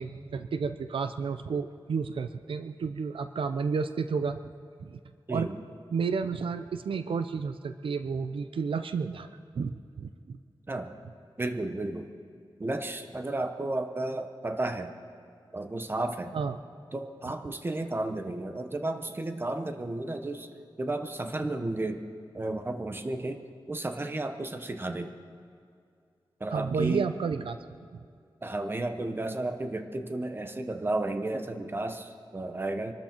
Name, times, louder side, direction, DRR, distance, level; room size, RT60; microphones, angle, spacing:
voice 1, 0.0-4.4 4.8-5.0 5.3-5.5 5.9-10.4 16.3-16.6 17.2-17.5 26.5-27.6, right 5 dB, 85° right, 10 dB, 0.6 m, -31 dB
voice 2, 11.4-12.1 12.6-14.9 15.5-16.3 16.9-20.5 20.8-22.0 22.3-23.4 23.7-25.1 26.4-27.1 28.4-32.9, right 2 dB, 25° right, 7 dB, 1.0 m, -33 dB
24.5 x 13.0 x 4.5 m, 2.3 s
wide cardioid pair, 125°, 9 cm